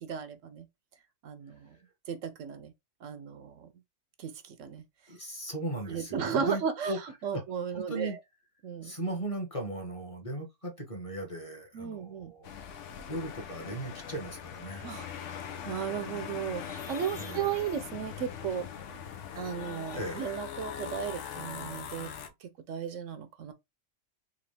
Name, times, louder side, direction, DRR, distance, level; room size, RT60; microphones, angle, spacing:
voice 1, 0.0-0.7 1.2-1.8 2.1-2.7 3.0-3.7 4.2-4.8 5.9-8.2 8.6-8.9 11.7-12.3 14.8-15.1 15.6-18.7 19.3-22.1 22.4-23.5, right 7 dB, 75° right, 1.0 m, -35 dB
voice 2, 5.1-7.0 7.3-7.4 7.7-8.2 8.8-12.5 13.1-14.8 17.2-17.5 19.9-20.4, right 1 dB, 25° left, 1.3 m, -37 dB
sound 1, 12.4-22.3, left 8 dB, 75° left, 1.0 m, -41 dB
3.9 x 3.1 x 3.3 m
omnidirectional pair, 1.3 m